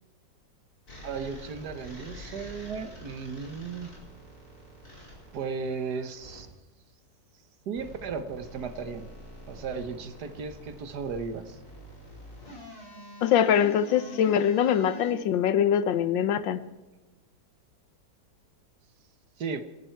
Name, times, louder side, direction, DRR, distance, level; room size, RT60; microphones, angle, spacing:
sound 1, 0.9-6.4 7.7-15.1, equal, 55° left, 5.5 m, -46 dB
voice 1, 1.0-3.9 5.3-6.5 7.7-9.1 9.5-11.6 19.4-19.6, right 5 dB, 65° right, 10 dB, 1.6 m, -35 dB
voice 2, 13.2-16.6, left 9 dB, 90° left, 13 dB, 1.6 m, -23 dB
27.0 x 11.0 x 4.6 m, 1.1 s
omnidirectional pair, 2.0 m